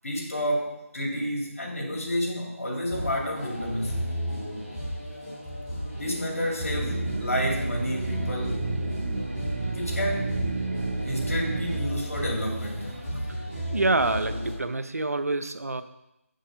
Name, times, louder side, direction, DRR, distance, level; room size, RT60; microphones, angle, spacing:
voice 1, 0.0-4.1 6.0-8.7 9.7-10.3 11.0-12.9, equal, 70° left, -1 dB, 2.9 m, -30 dB
sound 1, 2.9-14.5, equal, 15° left, 3.5 m, -33 dB
sound 2, 6.7-11.8, right 3 dB, 50° right, 0.4 m, -31 dB
voice 2, 13.7-15.8, right 2 dB, 85° right, 11 dB, 0.7 m, -26 dB
6.7 x 6.6 x 5.1 m, 0.88 s
figure-of-eight pair, 170°, 8 cm